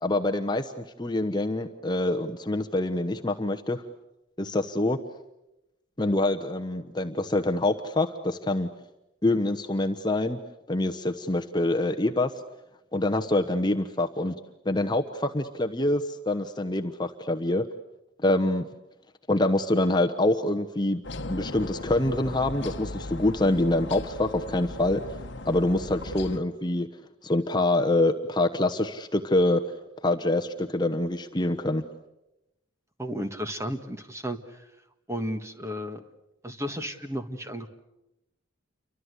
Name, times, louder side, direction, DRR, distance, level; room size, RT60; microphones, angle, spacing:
voice 1, 0.0-3.8 4.4-5.0 6.0-8.7 9.2-10.4 10.7-12.3 12.9-14.3 14.6-17.6 18.2-18.7 19.3-21.0 21.3-25.2 25.4-26.9 27.2-29.6 30.0-31.8, left 2 dB, 20° left, 5 dB, 1.0 m, -25 dB
sound 1, 21.0-26.4, left 2 dB, 55° left, 1.3 m, -38 dB
voice 2, 33.0-34.6 35.1-36.0 36.4-37.7, equal, 15° right, 7 dB, 1.6 m, -33 dB
29.5 x 24.5 x 8.1 m, 0.92 s
head